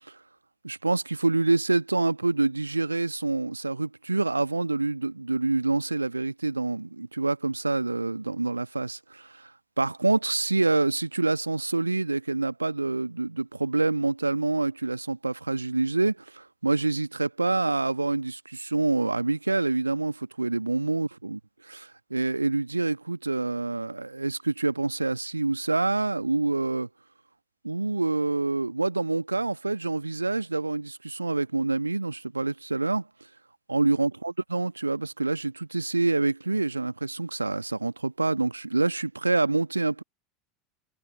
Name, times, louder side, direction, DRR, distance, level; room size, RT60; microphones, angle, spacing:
voice 1, 0.6-9.5 9.8-26.9 27.6-33.0 33.7-40.0, right 3 dB, 85° right, 1.3 m, -27 dB
figure-of-eight pair, 80°, 0 cm